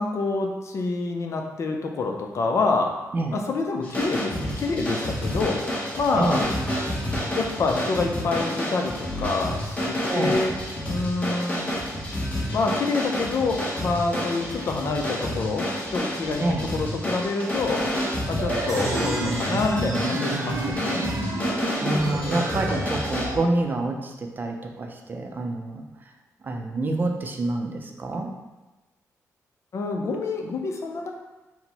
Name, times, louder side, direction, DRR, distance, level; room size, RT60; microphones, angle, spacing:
voice 1, 0.0-2.9 3.3-5.6 6.0-6.5 7.4-10.5 10.8-11.6 12.5-17.9 18.3-21.1 22.7-22.8 29.7-31.1, left 3 dB, 55° left, 3 dB, 0.5 m, -27 dB
sound 1, 3.8-23.2, equal, 25° left, 1.0 m, -29 dB
voice 2, 6.2-6.5 10.0-10.4 16.4-16.6 21.8-25.8 26.4-28.3, right 2 dB, 35° right, 3 dB, 0.5 m, -27 dB
sound 2, 18.4-23.4, right 2 dB, 80° right, 0.6 m, -30 dB
sound 3, 18.7-22.0, right 1 dB, 5° left, 1.2 m, -41 dB
4.3 x 2.1 x 4.0 m, 1.1 s
cardioid pair, 105°, 6 cm